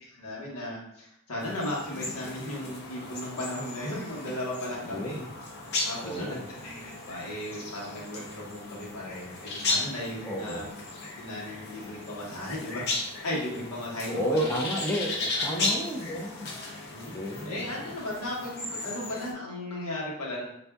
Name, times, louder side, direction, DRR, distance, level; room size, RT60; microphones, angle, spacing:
voice 1, 0.1-5.2 5.8-10.7 11.0-12.8 13.2-14.5 15.1-15.7 16.9-20.4, left 1 dB, 90° left, -4 dB, 1.2 m, -36 dB
sound 1, 1.4-19.3, left 2 dB, 50° left, 0.6 m, -36 dB
voice 2, 4.8-5.3 6.0-6.4 10.2-10.6 14.1-15.1 15.4-16.5 17.1-17.6, equal, 10° left, 0 dB, 0.4 m, -31 dB
4.7 x 2.6 x 2.2 m, 0.77 s
head